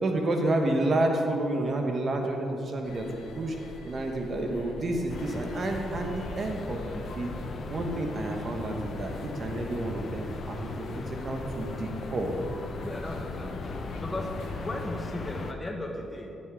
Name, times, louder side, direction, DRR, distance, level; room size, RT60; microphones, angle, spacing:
voice 1, 0.0-3.1 3.3-3.5 3.8-7.3 7.7-9.1 9.4-10.7 11.1-12.3, right 2 dB, 40° right, 2 dB, 1.3 m, -29 dB
sound 1, 2.8-14.9, left 2 dB, 70° left, 1.2 m, -43 dB
sound 2, 5.1-15.5, left 3 dB, 45° left, 0.7 m, -38 dB
voice 2, 12.8-13.6 14.0-16.4, left 1 dB, 20° left, 3 dB, 1.2 m, -36 dB
11.5 x 7.9 x 3.7 m, 2.7 s
cardioid pair, 90°, 0 cm